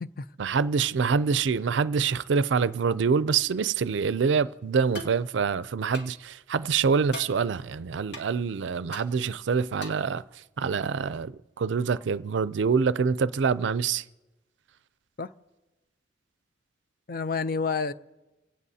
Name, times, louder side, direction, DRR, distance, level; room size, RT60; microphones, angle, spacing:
voice 1, 0.4-10.2 10.6-14.0, right 5 dB, 75° right, 0.4 m, -26 dB
sound 1, 4.9-5.2 5.9-6.1 7.1-7.3 8.1-8.2 8.9-9.1 9.8-10.1, left 1 dB, 65° left, 2.3 m, -38 dB
voice 2, 17.1-17.9, left 5 dB, 50° left, 0.5 m, -29 dB
28.0 x 17.0 x 2.8 m
head